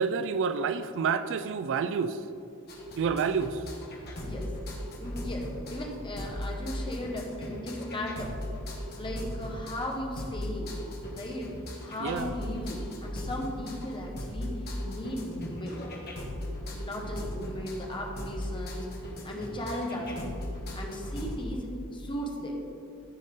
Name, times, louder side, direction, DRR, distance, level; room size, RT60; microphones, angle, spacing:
voice 1, 0.0-2.2 3.0-3.6 12.0-12.3, right 6 dB, 60° right, 12 dB, 0.4 m, -28 dB
sound 1, 2.7-21.4, left 1 dB, 45° left, 1.7 m, -38 dB
voice 2, 5.0-8.3 8.9-10.7 11.1-11.5 11.8-15.8 16.7-20.3 20.7-22.6, left 1 dB, 20° left, 0 dB, 1.3 m, -36 dB
14.5 x 5.4 x 3.8 m, 2.6 s
head